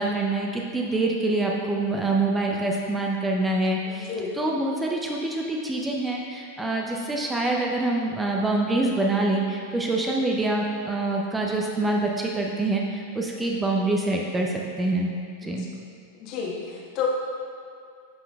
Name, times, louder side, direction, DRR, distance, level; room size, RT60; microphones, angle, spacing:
voice 1, 0.0-15.1 15.4-15.7, right 2 dB, 10° right, -1 dB, 0.6 m, -25 dB
voice 2, 3.9-4.3 15.4-15.7 16.2-17.1, left 8 dB, 40° left, -3 dB, 1.3 m, -31 dB
11.0 x 5.8 x 2.3 m, 2.4 s
figure-of-eight pair, 90°, 0 cm